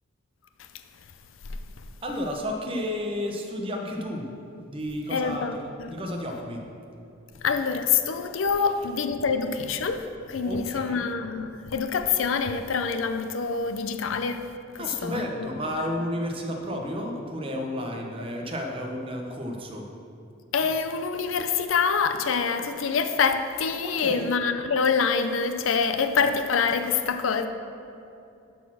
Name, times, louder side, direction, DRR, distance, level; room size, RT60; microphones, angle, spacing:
voice 1, 2.0-5.6 5.9-6.7 10.4-11.0 14.8-19.9 23.8-24.3, left 1 dB, 25° right, 2 dB, 0.9 m, -32 dB
voice 2, 5.1-6.0 7.4-14.4 14.7-15.5 20.5-27.5, left 5 dB, 75° left, 8 dB, 0.5 m, -26 dB
11.5 x 4.3 x 6.0 m, 2.7 s
head